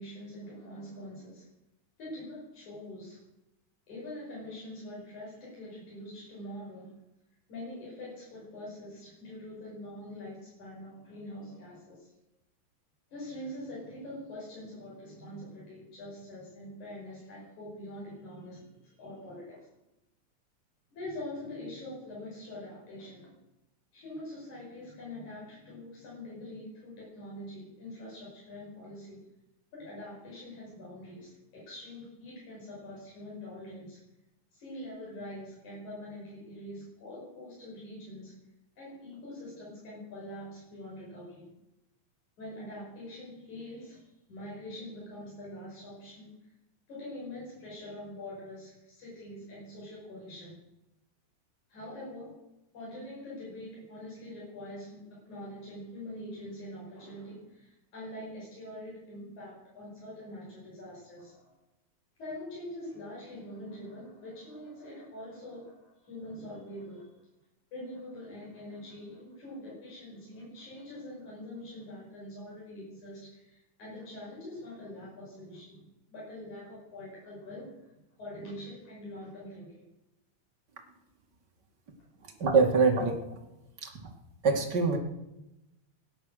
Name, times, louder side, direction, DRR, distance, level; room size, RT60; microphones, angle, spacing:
voice 1, 0.0-1.5 2.0-3.2 3.9-6.9 7.5-12.2 13.1-19.7 20.9-23.3 23.9-29.2 29.7-34.0 34.5-38.4 38.8-41.5 42.4-46.5 46.9-50.6 51.7-52.4 52.7-61.6 62.2-67.1 67.7-77.9 78.2-79.9, left 1 dB, 75° left, -6 dB, 7.3 m, -44 dB
voice 2, 82.4-83.2 83.8-83.9 84.4-85.0, right 4 dB, 35° right, 3 dB, 2.5 m, -24 dB
17.5 x 10.5 x 6.6 m, 0.91 s
omnidirectional pair, 3.4 m